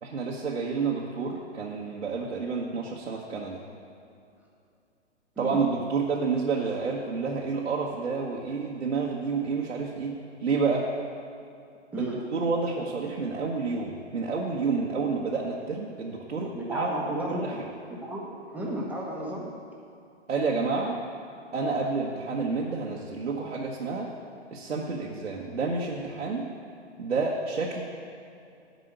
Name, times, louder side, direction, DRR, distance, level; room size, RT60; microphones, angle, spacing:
voice 1, 0.0-3.6 5.4-10.9 12.0-16.9 17.3-17.5 20.3-21.0 21.5-24.1 24.5-26.5 27.0-27.8, right 4 dB, 75° right, -4 dB, 1.4 m, -29 dB
voice 2, 11.9-12.3 16.5-19.5, right 1 dB, 5° right, -4 dB, 1.2 m, -33 dB
9.4 x 5.5 x 7.9 m, 2.6 s
figure-of-eight pair, 130°, 36 cm